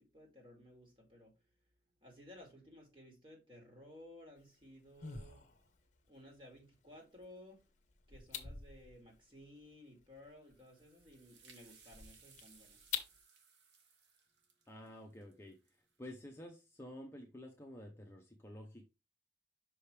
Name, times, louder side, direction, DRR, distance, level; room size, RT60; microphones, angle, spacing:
voice 1, 0.0-1.3 2.0-5.4 6.1-7.6 8.1-12.9, left 1 dB, 30° right, 2.4 m, -57 dB
sound 1, 4.4-13.2, left 7 dB, 40° left, 0.9 m, -49 dB
sound 2, 10.4-16.0, right 5 dB, 75° right, 1.2 m, -64 dB
voice 2, 14.7-18.9, left 1 dB, 15° left, 0.7 m, -51 dB
5.8 x 4.9 x 3.3 m
head